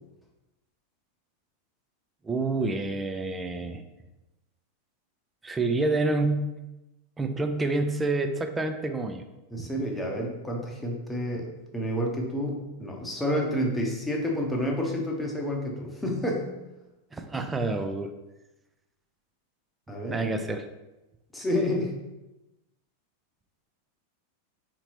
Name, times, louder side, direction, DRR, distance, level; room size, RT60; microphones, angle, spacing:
voice 1, 2.2-3.8 5.4-6.5 7.2-9.2 17.1-18.1 20.1-20.6, right 2 dB, 10° right, 6 dB, 0.4 m, -28 dB
voice 2, 9.5-16.4 19.9-20.2 21.3-21.9, equal, 5° left, -1 dB, 0.9 m, -29 dB
3.9 x 3.0 x 4.3 m, 1.0 s
figure-of-eight pair, 90°, 0 cm